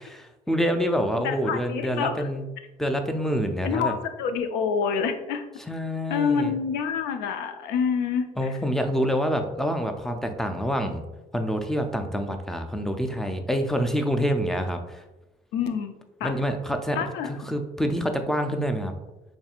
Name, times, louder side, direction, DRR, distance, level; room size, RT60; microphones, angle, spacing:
voice 1, 0.2-2.4 2.8-4.0 5.7-6.6 8.4-11.0 11.3-15.0 16.2-17.0 17.3-18.9, equal, ahead, 6 dB, 0.3 m, -27 dB
voice 2, 1.2-2.3 3.6-5.4 6.1-8.6 15.5-15.9 16.2-16.3 16.9-17.3, left 6 dB, 90° left, 8 dB, 0.4 m, -27 dB
4.3 x 3.2 x 2.4 m, 1.0 s
cardioid pair, 110°, 17 cm